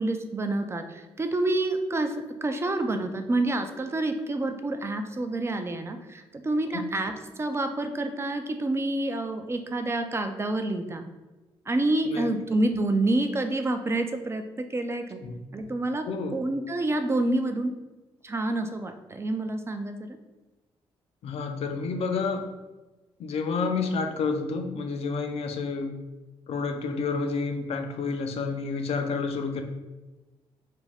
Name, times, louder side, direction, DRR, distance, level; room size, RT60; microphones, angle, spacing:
voice 1, 0.0-11.0 11.7-15.2 15.5-17.8 18.2-20.1, right 2 dB, 25° right, 6 dB, 0.4 m, -28 dB
voice 2, 16.0-16.4 21.2-22.4 23.2-25.9 26.5-29.6, left 4 dB, 65° left, 5 dB, 0.4 m, -29 dB
2.5 x 2.2 x 3.3 m, 1.1 s
supercardioid pair, 60°, 11 cm